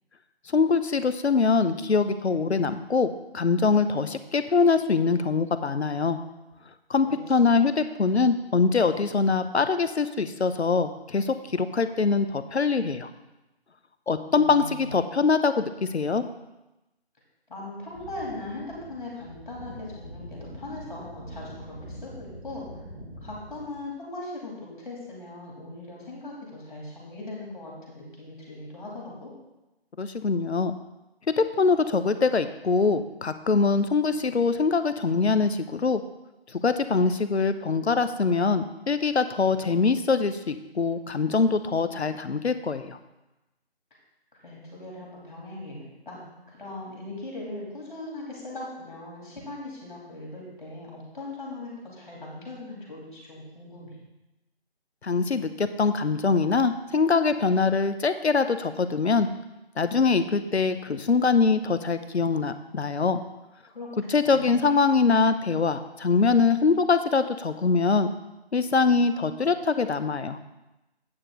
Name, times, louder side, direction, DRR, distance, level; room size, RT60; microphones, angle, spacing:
voice 1, 0.5-6.2 6.9-13.1 14.1-16.2 30.0-30.8 31.4-36.0 36.5-43.0 55.0-59.3 59.8-63.2 64.1-68.1 68.5-70.4, left 4 dB, 80° left, 11 dB, 0.7 m, -23 dB
voice 2, 7.0-7.5 14.3-15.0 17.5-22.7 23.2-29.3 44.3-54.0 63.7-64.6, left 2 dB, 45° left, -3 dB, 3.1 m, -39 dB
sound 1, 17.8-23.9, equal, 5° left, 0.9 m, -43 dB
8.8 x 6.7 x 3.9 m, 0.99 s
figure-of-eight pair, 160°, 32 cm